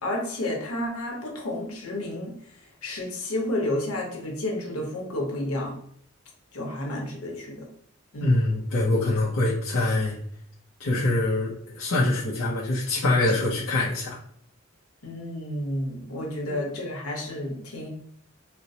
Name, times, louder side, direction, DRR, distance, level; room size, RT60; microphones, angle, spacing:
voice 1, 0.0-5.8 6.5-7.7 8.1-8.4 15.0-17.9, left 1 dB, 90° left, -1 dB, 0.9 m, -31 dB
voice 2, 8.2-10.2 10.8-14.2 16.5-16.6, left 2 dB, 70° left, -6 dB, 0.6 m, -24 dB
4.3 x 2.0 x 2.7 m, 0.66 s
head